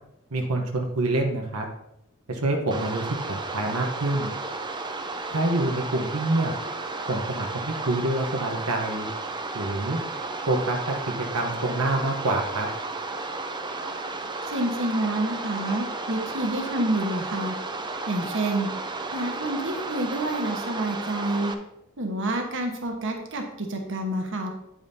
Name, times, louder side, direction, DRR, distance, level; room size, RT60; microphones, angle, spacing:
voice 1, 0.3-1.6 2.3-4.3 5.3-6.5 7.1-9.1 9.5-10.0 10.5-12.7, right 2 dB, 85° right, 1 dB, 1.1 m, -26 dB
sound 1, 2.7-21.5, right 3 dB, 20° right, 0.5 m, -33 dB
voice 2, 14.5-17.6 18.1-18.7 19.1-21.5 22.0-24.5, right 1 dB, 60° right, 3 dB, 1.2 m, -28 dB
8.9 x 8.7 x 2.8 m, 0.82 s
head